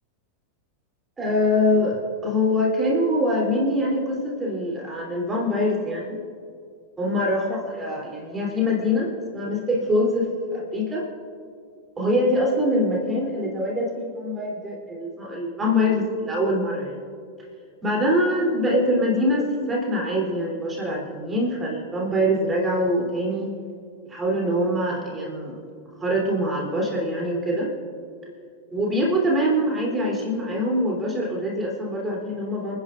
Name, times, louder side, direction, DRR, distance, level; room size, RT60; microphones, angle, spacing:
voice 1, 1.2-6.2 7.0-11.0 12.0-16.9 17.8-23.5 24.1-25.6 26.0-27.7 28.7-32.8, left 1 dB, 15° right, -2 dB, 3.2 m, -24 dB
29.5 x 10.5 x 2.5 m, 2.3 s
figure-of-eight pair, 90°, 0 cm